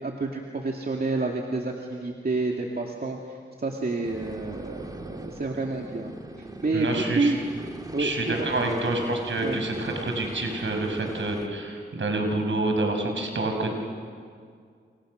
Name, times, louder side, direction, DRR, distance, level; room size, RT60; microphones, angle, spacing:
voice 1, 0.0-6.1 6.4-7.4 7.9-8.5 9.4-9.6, right 3 dB, 50° right, 0 dB, 2.5 m, -29 dB
sound 1, 4.0-11.5, right 1 dB, 20° right, 2.4 m, -40 dB
voice 2, 6.7-7.3 8.0-13.8, right 2 dB, 70° right, 3 dB, 5.6 m, -27 dB
29.5 x 27.5 x 6.5 m, 2.1 s
cardioid pair, 55°, 20 cm